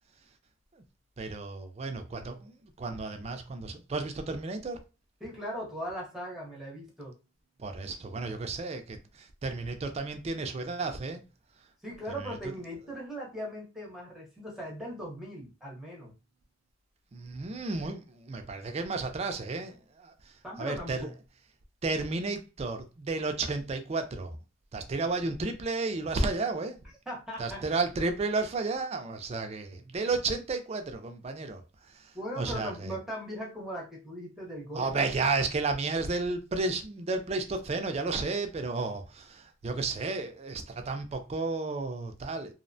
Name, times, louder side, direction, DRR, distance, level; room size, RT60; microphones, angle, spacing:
voice 1, 1.2-4.8 7.6-11.2 12.1-12.4 17.1-21.1 21.8-24.4 24.7-26.8 27.4-32.9 34.7-42.5, right 3 dB, 35° right, 0.4 m, -32 dB
voice 2, 5.2-7.1 11.8-16.1 20.4-21.1 27.1-27.7 32.1-35.0, equal, ahead, 0.8 m, -39 dB
2.7 x 2.1 x 2.6 m
head